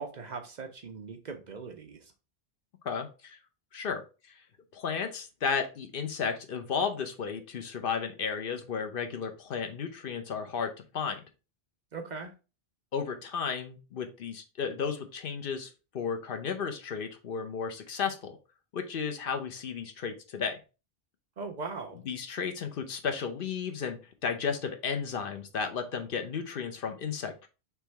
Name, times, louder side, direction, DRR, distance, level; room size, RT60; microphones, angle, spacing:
voice 1, 0.0-2.1 11.9-12.3 21.4-22.0, right 4 dB, 50° right, 0.7 m, -40 dB
voice 2, 2.8-3.4 3.7-4.0 4.7-11.2 12.9-15.7 15.9-18.4 18.7-20.6 22.1-27.5, left 6 dB, 65° left, 0.8 m, -33 dB
3.4 x 3.1 x 4.4 m
omnidirectional pair, 1.0 m